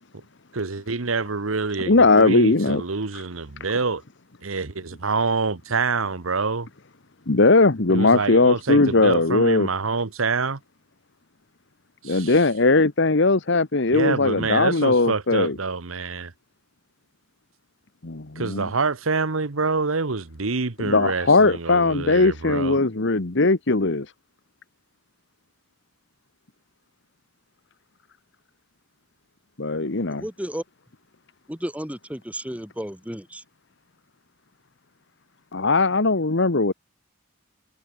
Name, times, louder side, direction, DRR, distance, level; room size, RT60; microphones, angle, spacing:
voice 1, 0.5-4.0 4.4-6.7 7.9-10.6 12.0-12.3 13.9-16.3 18.3-22.8, right 4 dB, 85° right, 1.3 m, -26 dB
voice 2, 1.9-2.8 7.3-9.7 12.0-15.6 18.0-18.7 20.8-24.1 29.6-30.2 35.5-36.7, left 3 dB, 60° left, 1.3 m, -19 dB
voice 3, 30.1-30.6 31.5-33.4, equal, 5° right, 2.9 m, -33 dB
head